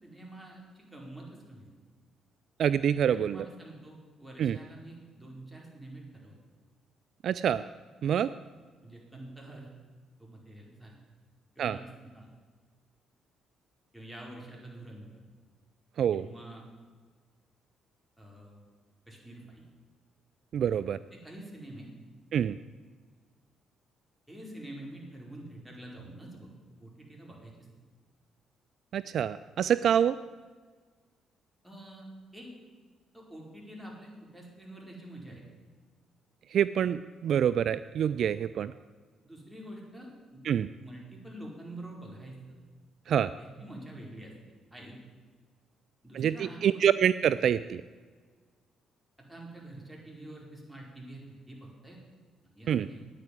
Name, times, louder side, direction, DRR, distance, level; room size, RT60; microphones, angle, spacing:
voice 1, 0.0-1.7 3.1-6.3 8.2-8.3 8.8-9.7 10.2-11.0 11.5-12.3 13.9-15.2 16.1-16.6 18.2-18.6 19.1-19.6 20.7-20.8 21.1-21.9 24.3-26.5 26.8-27.5 31.6-32.5 33.1-35.4 39.2-40.4 40.8-42.6 43.4-44.3 44.7-45.0 46.0-46.6 49.3-51.2 51.5-52.0 52.6-53.0, right 1 dB, 5° right, -2 dB, 4.6 m, -46 dB
voice 2, 2.6-3.5 4.4-4.6 7.2-7.6 8.0-8.3 11.6-11.8 16.0-16.3 20.5-21.0 22.3-22.6 28.9-30.2 36.5-38.7 40.4-40.7 43.1-43.3 46.1-47.8 52.7-52.9, right 9 dB, 55° right, 14 dB, 0.3 m, -26 dB
9.4 x 9.0 x 9.7 m, 1.4 s
figure-of-eight pair, 45°, 0 cm